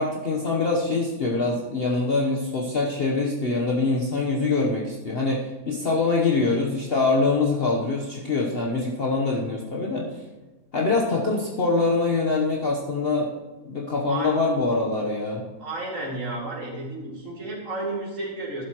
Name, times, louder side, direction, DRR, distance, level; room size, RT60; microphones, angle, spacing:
voice 1, 0.0-10.1 10.7-13.3 13.6-15.4, left 3 dB, 45° left, -2 dB, 1.2 m, -24 dB
voice 2, 15.6-18.6, right 2 dB, 55° right, -3 dB, 2.7 m, -32 dB
12.5 x 11.0 x 3.0 m, 1.2 s
omnidirectional pair, 1.6 m